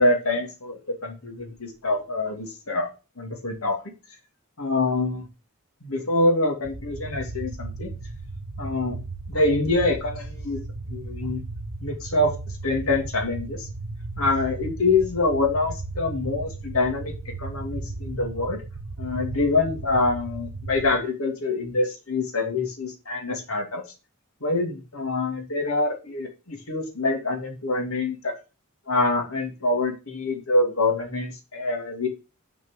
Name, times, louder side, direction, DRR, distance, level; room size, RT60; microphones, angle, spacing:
voice 1, 0.0-2.9 3.2-3.8 4.6-5.3 5.8-7.9 8.6-9.0 9.3-10.6 10.9-11.4 11.8-12.3 12.6-13.7 14.2-18.6 19.0-23.8 24.4-28.4 28.9-32.1, left 2 dB, 75° left, 2 dB, 2.6 m, -25 dB
sound 1, 6.6-20.9, right 3 dB, 75° right, 1.1 m, -35 dB
6.7 x 5.1 x 6.4 m, 0.31 s
head